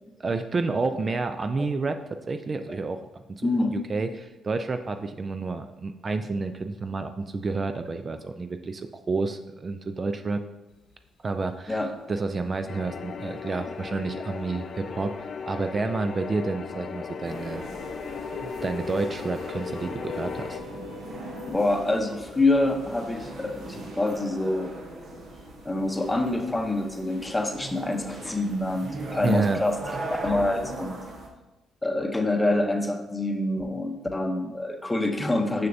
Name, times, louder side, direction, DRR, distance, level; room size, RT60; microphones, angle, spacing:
voice 1, 0.2-2.0 2.3-3.0 3.3-10.4 11.2-11.8 12.1-15.1 15.5-17.6 18.4-20.6 29.2-29.6, right 3 dB, 35° right, 8 dB, 0.3 m, -29 dB
voice 2, 3.4-3.8 11.7-11.9 21.5-24.7 25.6-29.8 30.1-31.0 31.8-35.7, left 2 dB, 15° left, 5 dB, 0.7 m, -26 dB
sound 1, 11.7-11.8 12.3-12.4 12.7-13.7 14.4-14.5 16.3-16.4 16.8-25.7, left 4 dB, 85° left, 1.0 m, -43 dB
sound 2, 12.7-20.6, left 6 dB, 50° left, 0.3 m, -37 dB
sound 3, 17.2-31.3, right 2 dB, 65° right, 1.1 m, -39 dB
6.4 x 5.8 x 2.6 m, 1.1 s
cardioid pair, 90°, 0 cm